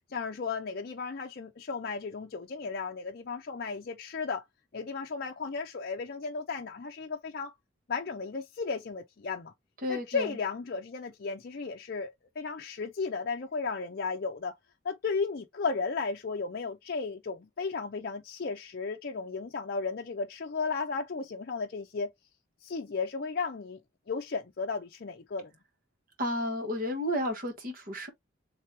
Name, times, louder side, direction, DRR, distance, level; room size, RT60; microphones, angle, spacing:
voice 1, 0.1-4.4 4.7-7.5 7.9-9.5 9.9-14.6 14.8-22.1 22.6-23.8 24.1-25.5, left 4 dB, 50° left, 0.5 m, -34 dB
voice 2, 9.8-10.4 26.2-28.1, left 1 dB, 45° right, 1.3 m, -32 dB
3.3 x 2.9 x 4.5 m
head